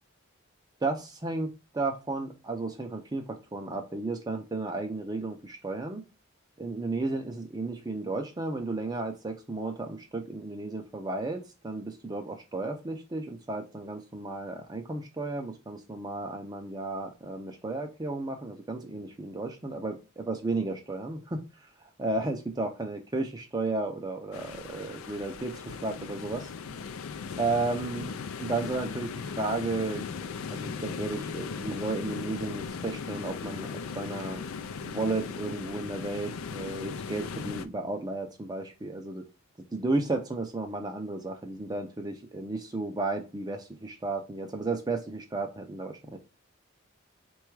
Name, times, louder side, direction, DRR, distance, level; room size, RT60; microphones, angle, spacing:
voice 1, 0.8-6.0 6.6-21.4 22.0-26.5 27.4-30.0 30.5-34.4 34.8-39.2 39.7-46.2, right 2 dB, 20° right, 4 dB, 0.4 m, -33 dB
sound 1, 24.3-37.7, left 5 dB, 80° left, 0.4 m, -38 dB
3.9 x 2.3 x 4.6 m, 0.29 s
head